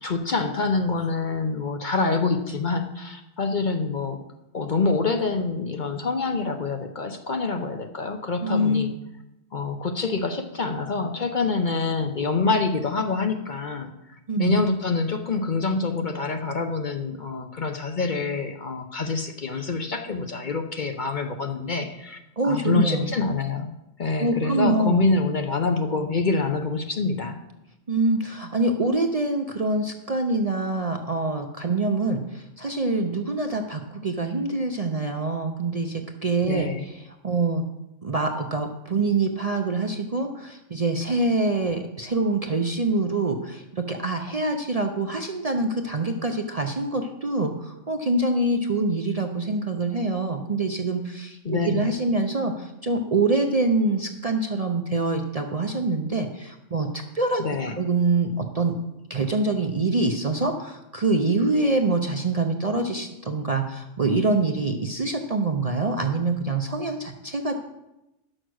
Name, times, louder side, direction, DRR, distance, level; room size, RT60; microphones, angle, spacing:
voice 1, 0.0-4.2 4.5-8.9 9.5-13.9 14.4-23.7 24.0-27.4 36.5-36.9 51.4-51.9 57.4-57.8, left 3 dB, 45° left, 5 dB, 0.8 m, -26 dB
voice 2, 8.4-8.9 14.3-14.5 22.4-23.1 24.2-25.0 27.9-37.7 38.0-57.4 57.8-58.7 59.1-67.6, right 2 dB, 40° right, 4 dB, 0.6 m, -25 dB
10.5 x 6.5 x 6.3 m, 0.92 s
omnidirectional pair, 1.3 m